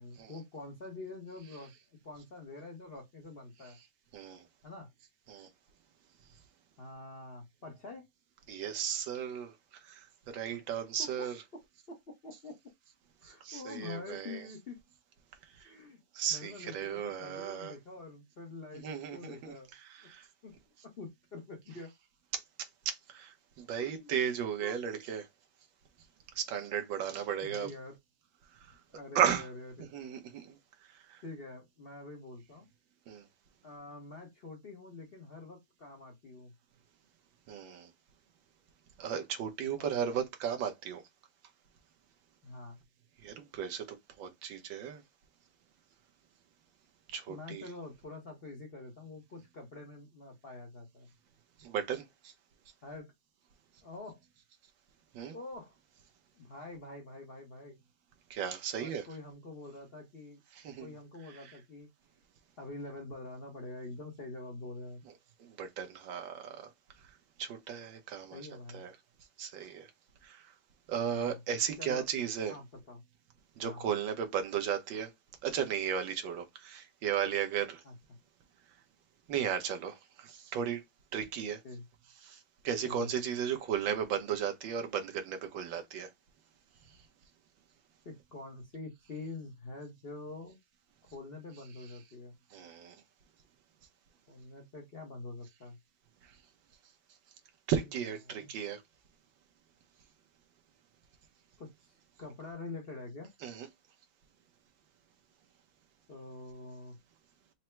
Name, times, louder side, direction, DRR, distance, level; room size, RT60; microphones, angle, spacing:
voice 1, 0.0-1.7 2.0-3.8 4.6-4.9 6.8-8.0 10.5-10.6 11.0-11.6 11.9-12.6 13.2-14.8 15.6-16.0 16.3-18.8 19.1-19.7 20.0-20.1 20.4-20.5 20.8-21.9 23.8-24.1 24.6-24.8 27.4-27.9 28.9-29.8 31.2-32.7 33.6-36.5 39.6-40.2 42.4-42.8 47.3-51.1 52.8-53.1 53.8-54.2 55.3-55.8 56.4-57.8 58.8-60.4 60.8-61.9 62.6-65.0 68.3-68.8 71.1-71.4 71.8-72.1 72.5-73.0 73.6-73.9 77.8-77.9 81.6-81.8 82.8-83.4 88.0-90.6 91.1-92.4 94.3-95.8 98.2-98.5 101.6-101.9 102.2-103.3 106.1-107.0, left 3 dB, 45° left, 0.8 m, -46 dB
voice 2, 4.1-4.4 5.3-5.5 8.5-9.5 9.8-11.4 13.2-14.5 15.6-15.7 16.1-17.7 18.7-20.3 22.3-22.4 22.8-25.3 26.3-27.7 28.6-28.7 29.1-29.5 29.9-30.6 30.9-31.2 33.1-33.2 37.5-37.9 39.0-41.0 43.2-45.0 47.1-47.7 51.6-52.3 55.1-55.3 58.3-59.0 60.5-60.9 61.3-61.4 65.4-66.7 67.4-68.4 68.7-68.9 69.4-69.9 70.2-70.5 70.9-72.6 73.6-75.1 75.4-77.8 79.3-80.8 81.1-81.6 82.2-86.1 92.5-93.0 97.7-98.8 103.4-103.7, right 8 dB, 90° right, 1.6 m, -35 dB
4.3 x 2.0 x 4.3 m
omnidirectional pair, 2.0 m